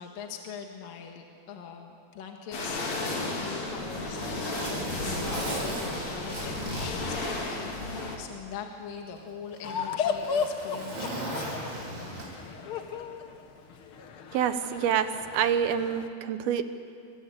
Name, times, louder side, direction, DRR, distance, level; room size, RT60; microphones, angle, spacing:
voice 1, 0.0-11.7, left 7 dB, 65° left, 2 dB, 3.1 m, -43 dB
sound 1, 2.5-8.2, left 2 dB, 45° left, 4.1 m, -33 dB
Zipper (clothing), 3.4-7.9 8.3-8.4 9.2-12.6 13.8-14.0, right 1 dB, 30° right, 5.9 m, -37 dB
sound 2, 9.6-16.1, left 6 dB, 85° left, 1.2 m, -35 dB
voice 2, 14.3-15.1 15.3-16.6, right 9 dB, 75° right, 10 dB, 2.8 m, -26 dB
29.5 x 24.0 x 8.4 m, 2.5 s
omnidirectional pair, 4.6 m